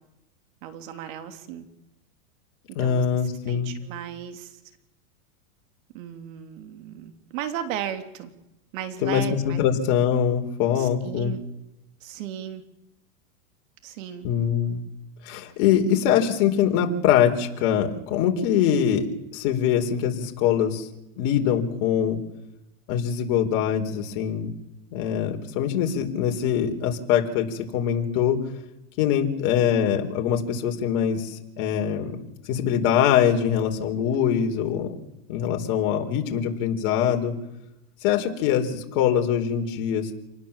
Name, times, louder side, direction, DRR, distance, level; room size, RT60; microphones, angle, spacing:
voice 1, 0.6-1.7 2.7-3.0 3.5-4.6 5.9-8.3 8.7-9.6 10.7-11.4 12.0-12.6 13.8-14.3, right 10 dB, 65° right, 7 dB, 3.2 m, -35 dB
voice 2, 2.7-3.7 9.0-11.4 14.2-14.8 15.2-19.1 19.3-20.9 21.2-22.2 22.9-24.5 24.9-28.4 29.0-32.2 32.5-34.9 35.3-37.3 38.0-40.1, left 9 dB, 55° left, 3 dB, 4.4 m, -23 dB
28.0 x 19.5 x 7.4 m, 0.91 s
supercardioid pair, 135°, 43 cm